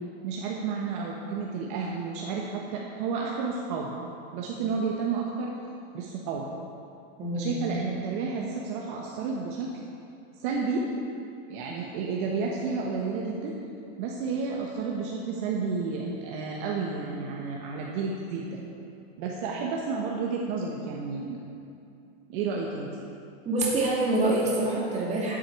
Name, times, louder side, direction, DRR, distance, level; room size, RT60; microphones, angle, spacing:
voice 1, 0.2-4.0 4.3-5.5 5.9-6.5 7.3-9.7 10.4-10.9 11.5-13.5 14.0-18.6 19.2-21.4 22.3-22.9, right 4 dB, 55° right, -2 dB, 1.1 m, -31 dB
voice 2, 7.2-7.5 23.4-25.4, right 2 dB, 20° right, -5 dB, 2.5 m, -26 dB
11.0 x 7.7 x 4.7 m, 2.6 s
supercardioid pair, 140°, 32 cm